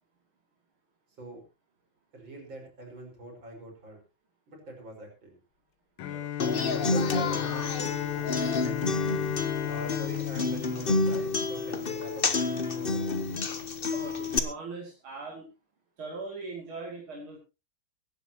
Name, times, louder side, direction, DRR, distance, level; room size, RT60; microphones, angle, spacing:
voice 1, 2.1-4.0 4.5-5.4 6.7-8.9 9.7-13.5, right 1 dB, 70° right, 2 dB, 6.0 m, -43 dB
Bowed string instrument, 6.0-11.9, left 11 dB, 80° left, 1.6 m, -34 dB
voice 2, 6.0-6.4 13.9-15.5 16.0-17.4, right 3 dB, 90° right, -2 dB, 3.7 m, -40 dB
Human voice / Acoustic guitar, 6.4-14.4, left 3 dB, 35° left, 1.0 m, -29 dB
23.5 x 10.5 x 3.0 m, 0.29 s
omnidirectional pair, 2.2 m